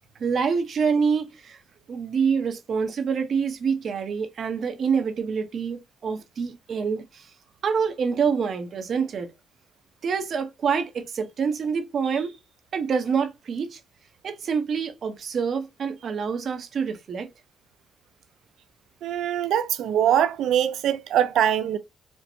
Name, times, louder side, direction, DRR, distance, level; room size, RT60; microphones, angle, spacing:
voice 1, 0.2-1.6 1.9-7.3 7.6-9.3 10.0-12.4 12.7-13.8 14.2-17.3, right 6 dB, 60° right, 0.8 m, -26 dB
voice 2, 19.0-21.8, right 10 dB, 85° right, 0.4 m, -22 dB
4.5 x 2.1 x 2.5 m
cardioid pair, 100°, 0 cm